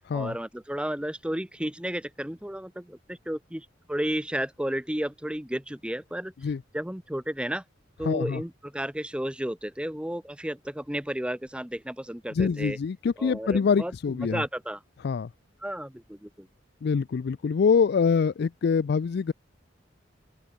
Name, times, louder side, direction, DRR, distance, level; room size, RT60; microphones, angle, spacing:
voice 1, 0.1-6.3 6.7-7.6 8.0-12.8 13.2-13.9 14.3-14.8 15.6-16.5, right 1 dB, 5° right, 1.1 m, -32 dB
voice 2, 8.0-8.4 12.3-14.4 15.0-15.3 16.8-19.3, left 5 dB, 60° left, 0.4 m, -25 dB
open air
head